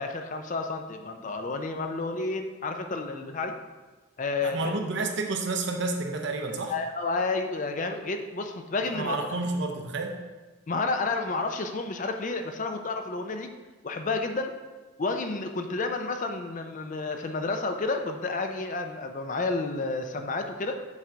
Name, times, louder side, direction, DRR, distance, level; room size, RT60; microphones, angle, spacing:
voice 1, 0.0-3.6 4.2-4.8 6.7-9.2 10.7-13.5 13.8-14.5 15.0-20.8, left 3 dB, 40° left, 6 dB, 0.5 m, -30 dB
voice 2, 4.4-6.7 8.9-10.2, right 3 dB, 60° right, 3 dB, 0.8 m, -30 dB
7.3 x 3.8 x 4.5 m, 1.3 s
head